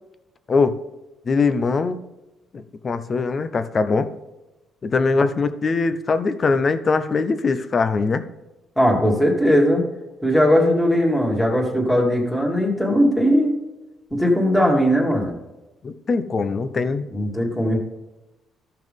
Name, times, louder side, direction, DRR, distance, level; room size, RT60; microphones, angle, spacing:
voice 1, 1.3-2.0 2.5-4.1 4.8-8.3 15.8-17.1, left 4 dB, 35° left, 11 dB, 0.8 m, -21 dB
voice 2, 8.8-9.8 10.2-13.5 14.1-15.3 17.1-17.8, equal, ahead, -2 dB, 2.1 m, -19 dB
14.0 x 5.8 x 3.7 m, 1.0 s
cardioid pair, 125°, 0 cm